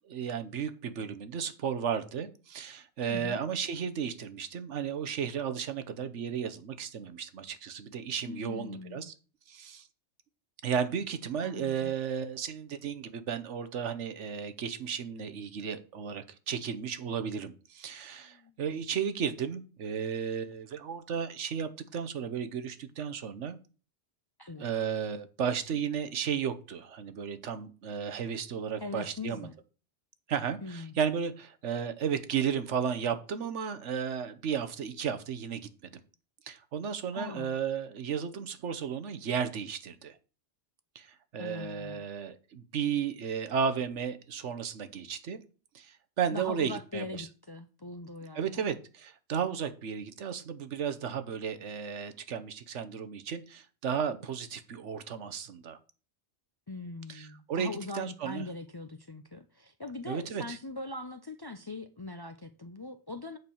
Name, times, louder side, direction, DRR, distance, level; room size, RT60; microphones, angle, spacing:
voice 1, 0.1-9.1 9.5-9.9 10.6-23.6 24.6-29.5 30.3-35.9 36.5-40.2 40.9-45.4 45.7-47.3 48.3-55.8 57.1-58.4 60.1-60.6, right 7 dB, 90° right, 1.3 m, -34 dB
voice 2, 8.2-9.1 11.4-11.9 18.2-18.6 24.4-24.7 28.8-29.5 30.6-31.0 37.1-37.5 41.4-42.0 46.3-48.7 56.7-63.4, left 2 dB, 35° left, 0.4 m, -41 dB
8.2 x 4.6 x 7.0 m
omnidirectional pair, 1.2 m